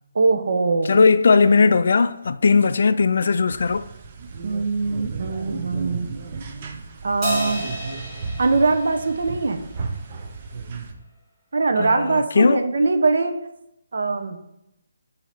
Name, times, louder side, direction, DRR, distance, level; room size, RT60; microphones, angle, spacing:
voice 1, 0.1-1.0 4.4-6.1 7.0-7.7 8.4-9.6 11.5-13.3 13.9-14.4, right 3 dB, 65° right, 0.8 m, -22 dB
voice 2, 0.9-3.9 11.8-12.6, left 4 dB, 50° left, 0.3 m, -18 dB
sound 1, 3.5-10.9, right 4 dB, 25° right, 0.5 m, -34 dB
Crash cymbal, 7.2-9.9, equal, 10° right, 1.2 m, -31 dB
7.3 x 2.8 x 5.6 m
hypercardioid pair, 175°, 0 cm